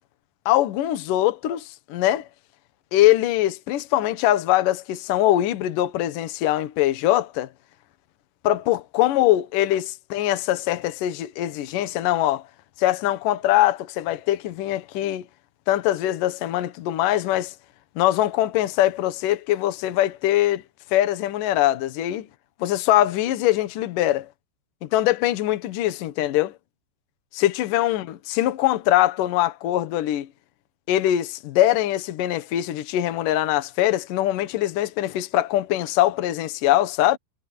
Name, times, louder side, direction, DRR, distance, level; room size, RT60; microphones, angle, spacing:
voice 1, 0.5-2.3 2.9-7.5 8.4-12.4 12.8-15.3 15.7-17.5 18.0-20.6 20.9-22.3 22.6-24.3 24.8-26.5 27.3-30.3 30.9-37.2, left 14 dB, 60° left, 2.5 m, -22 dB
omnidirectional pair, 5.1 m